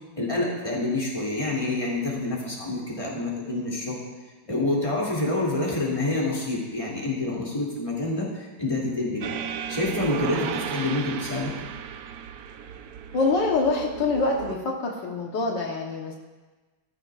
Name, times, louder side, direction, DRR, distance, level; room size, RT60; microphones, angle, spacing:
voice 1, 0.2-4.0 4.5-9.3 9.7-11.5, left 2 dB, 15° left, -5 dB, 2.7 m, -27 dB
sound 1, 9.2-14.6, right 8 dB, 70° right, 1.0 m, -34 dB
voice 2, 13.1-16.2, left 3 dB, 80° left, 0 dB, 1.9 m, -25 dB
15.5 x 13.0 x 2.5 m, 1.2 s
omnidirectional pair, 1.9 m